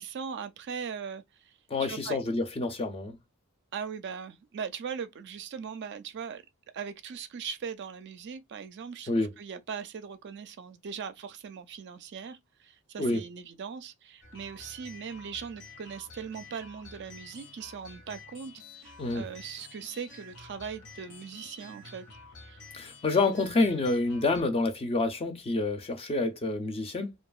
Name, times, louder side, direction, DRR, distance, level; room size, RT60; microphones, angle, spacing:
voice 1, 0.0-1.5 1.8-2.2 3.7-6.4 6.7-22.1 22.4-22.6, right 6 dB, 50° right, 0.4 m, -40 dB
voice 2, 1.7-3.2 9.1-9.3 13.0-13.2 19.0-19.3 22.7-27.1, left 3 dB, 25° left, 0.4 m, -28 dB
sound 1, 14.2-24.4, left 3 dB, 85° left, 0.9 m, -50 dB
2.7 x 2.3 x 2.3 m
head